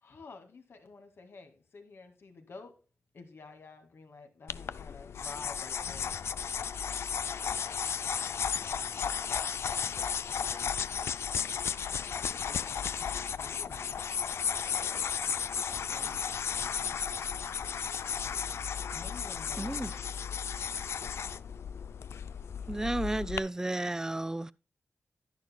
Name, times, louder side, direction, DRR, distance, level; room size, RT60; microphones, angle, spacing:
voice 1, 0.0-2.8 3.1-6.2 13.4-14.0 18.9-20.1, left 4 dB, 65° left, 2.1 m, -49 dB
sound 1, 4.5-23.4, left 7 dB, 80° left, 0.4 m, -34 dB
voice 2, 8.6-9.0 9.7-10.8 11.5-12.9 15.3-18.6, left 1 dB, 15° left, 0.9 m, -59 dB
voice 3, 19.6-20.0 22.7-24.5, right 2 dB, 15° right, 0.4 m, -33 dB
11.5 x 10.5 x 2.2 m
wide cardioid pair, 120°, 4 cm